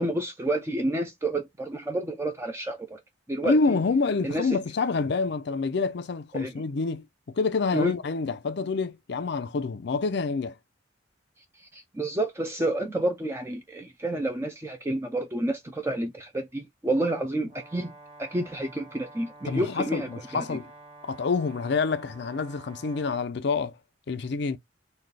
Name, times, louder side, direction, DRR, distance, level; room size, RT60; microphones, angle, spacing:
voice 1, 0.0-3.0 3.3-3.6 4.2-4.5 6.3-6.5 7.7-7.9 11.7-17.9 18.2-20.6, right 1 dB, 15° right, 0.5 m, -29 dB
voice 2, 3.4-10.6 19.4-20.7 21.0-23.7 24.1-24.6, left 4 dB, 65° left, 0.5 m, -27 dB
Brass instrument, 17.5-23.3, right 2 dB, 35° right, 0.9 m, -49 dB
4.1 x 2.3 x 3.3 m
head